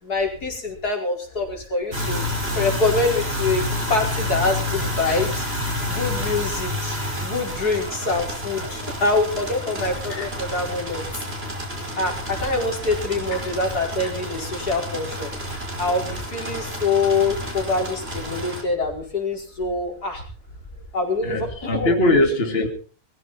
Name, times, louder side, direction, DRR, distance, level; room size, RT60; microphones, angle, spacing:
voice 1, 0.0-2.3 2.5-5.4 5.9-11.2 12.0-15.3 15.8-20.2 20.9-22.2, left 3 dB, 80° left, 1 dB, 5.5 m, -25 dB
sound 1, 1.9-18.6, left 1 dB, 40° right, 5.5 m, -29 dB
voice 2, 21.2-22.7, left 1 dB, 40° left, 4 dB, 2.7 m, -22 dB
21.5 x 15.0 x 4.4 m, 0.41 s
omnidirectional pair, 1.6 m